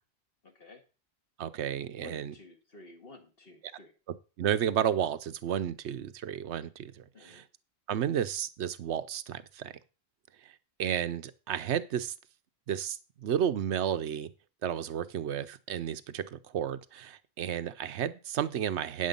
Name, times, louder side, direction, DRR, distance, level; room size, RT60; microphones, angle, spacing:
voice 1, 0.4-0.8 2.0-3.9 7.1-7.4, left 2 dB, 60° left, 4 dB, 2.1 m, -52 dB
voice 2, 1.4-2.3 4.4-7.4 7.9-9.7 10.4-10.5 10.8-12.1 12.7-14.3 14.6-19.1, right 9 dB, 85° right, 13 dB, 1.0 m, -32 dB
9.4 x 7.6 x 5.3 m, 0.34 s
omnidirectional pair, 1.1 m